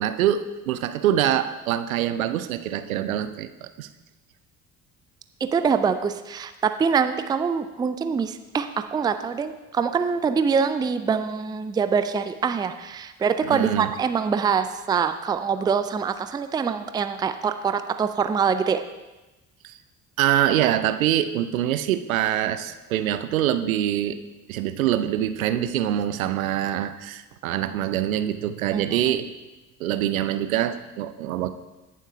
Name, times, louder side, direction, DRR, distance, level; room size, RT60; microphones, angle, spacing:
voice 1, 0.0-3.9 13.4-13.9 19.6-19.8 20.2-24.2 24.5-29.3 29.8-31.5, right 11 dB, 70° right, 11 dB, 0.6 m, -24 dB
voice 2, 5.4-18.8 28.7-28.8, right 6 dB, 10° right, 10 dB, 0.4 m, -24 dB
17.0 x 7.3 x 2.8 m, 1.1 s
figure-of-eight pair, 55°, 43 cm